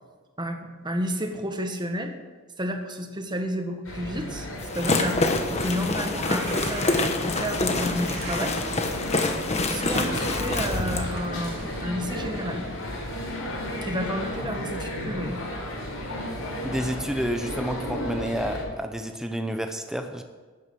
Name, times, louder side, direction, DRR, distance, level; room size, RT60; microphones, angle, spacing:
voice 1, 0.4-2.1 2.6-4.5 4.7-8.5 8.8-9.2 9.7-12.6 13.8-15.4, equal, 20° right, 4 dB, 1.4 m, -31 dB
sound 1, 3.8-18.6, left 1 dB, 80° left, 4.7 m, -33 dB
sound 2, 4.6-11.1, left 2 dB, 30° left, 1.2 m, -26 dB
sound 3, 6.2-7.3 8.0-8.5 9.0-9.3 9.7-10.0 10.7-13.2, right 3 dB, 50° right, 2.3 m, -42 dB
voice 2, 16.6-20.2, equal, 5° right, 5 dB, 0.7 m, -30 dB
12.5 x 9.4 x 6.3 m, 1.4 s
head